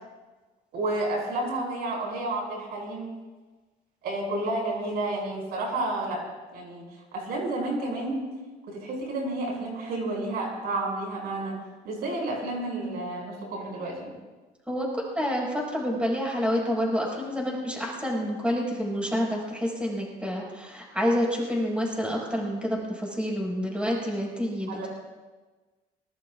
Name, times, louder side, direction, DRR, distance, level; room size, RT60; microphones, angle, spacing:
voice 1, 0.7-3.1 4.0-6.2 6.5-6.8 7.1-8.2 8.7-11.5 11.8-14.1 24.7-24.9, right 2 dB, 75° right, -1 dB, 6.0 m, -30 dB
voice 2, 14.7-24.8, equal, 5° right, -3 dB, 5.9 m, -28 dB
24.0 x 20.5 x 2.5 m, 1.3 s
cardioid pair, 110°, 17 cm